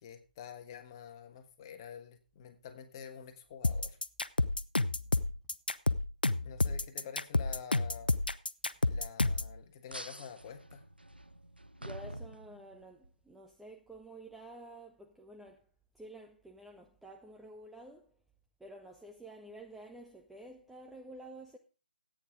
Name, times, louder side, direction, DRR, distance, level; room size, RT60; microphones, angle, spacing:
voice 1, 0.0-4.0 6.4-8.1 8.9-10.9, left 7 dB, 25° left, 1.4 m, -48 dB
sound 1, 3.6-9.5, left 2 dB, 75° left, 0.7 m, -30 dB
sound 2, 9.9-13.1, right 1 dB, 90° right, 0.7 m, -47 dB
voice 2, 11.8-15.7 15.9-18.1 18.6-21.6, right 1 dB, ahead, 0.5 m, -50 dB
14.5 x 9.0 x 3.6 m
figure-of-eight pair, 145°, 5 cm